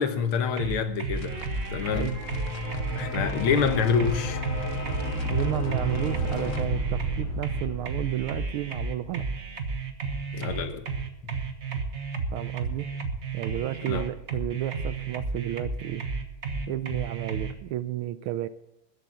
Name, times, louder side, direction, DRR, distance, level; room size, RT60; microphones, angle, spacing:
voice 1, 0.0-1.4 1.7-2.2 3.0-4.5 10.3-10.9 11.2-11.3 13.8-14.1, left 6 dB, 85° left, 9 dB, 2.0 m, -27 dB
sound 1, 0.6-17.5, right 4 dB, 35° right, 1.3 m, -32 dB
sound 2, 1.2-6.7, left 5 dB, 45° left, 1.1 m, -38 dB
sound 3, 1.3-9.2, right 1 dB, 60° right, 4.6 m, -33 dB
voice 2, 5.3-9.2 12.3-12.9 13.3-16.0 16.7-18.5, right 13 dB, 85° right, 14 dB, 1.5 m, -32 dB
13.5 x 8.1 x 8.0 m, 0.91 s
omnidirectional pair, 2.3 m